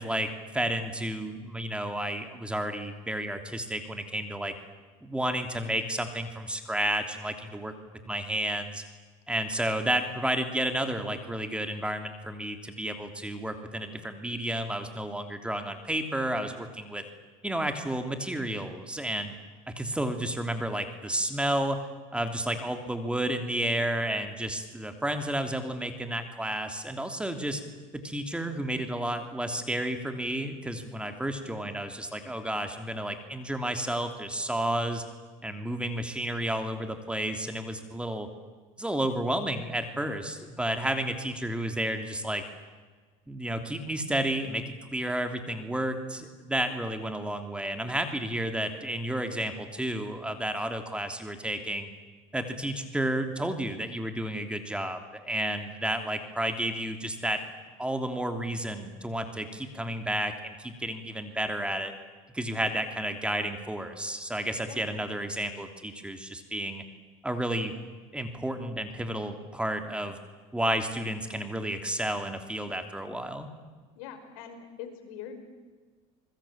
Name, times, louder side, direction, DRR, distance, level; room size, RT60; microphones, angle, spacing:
voice 1, 0.0-4.5 5.0-7.7 8.1-8.8 9.3-17.0 17.4-19.3 19.7-27.6 27.9-35.0 35.4-38.3 38.8-42.4 43.3-51.9 52.3-57.4 57.8-61.9 62.3-66.8 67.2-67.7 68.1-70.2 70.5-73.5, right 1 dB, 5° right, 7 dB, 3.0 m, -31 dB
voice 2, 73.9-75.4, left 8 dB, 80° left, 7 dB, 4.9 m, -43 dB
27.0 x 21.0 x 8.8 m, 1.4 s
supercardioid pair, 110°, 17 cm